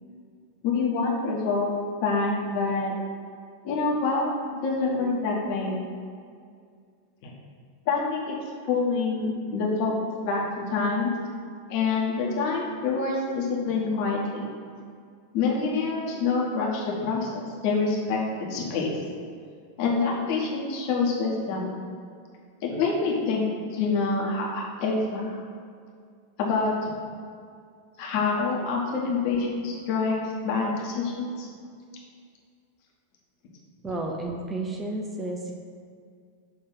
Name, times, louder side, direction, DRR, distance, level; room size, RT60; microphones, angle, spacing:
voice 1, 0.6-1.7 2.0-2.9 3.6-4.3 4.6-5.7 7.2-7.3 7.9-8.4 8.7-11.1 11.7-14.5 15.3-18.2 18.5-19.0 19.8-21.8 22.6-25.3 26.4-26.7 28.0-31.5, left 4 dB, 45° left, -2 dB, 1.2 m, -26 dB
voice 2, 33.8-35.5, right 2 dB, 15° right, 1 dB, 0.6 m, -32 dB
6.5 x 3.1 x 5.6 m, 2.2 s
figure-of-eight pair, 90°, 0 cm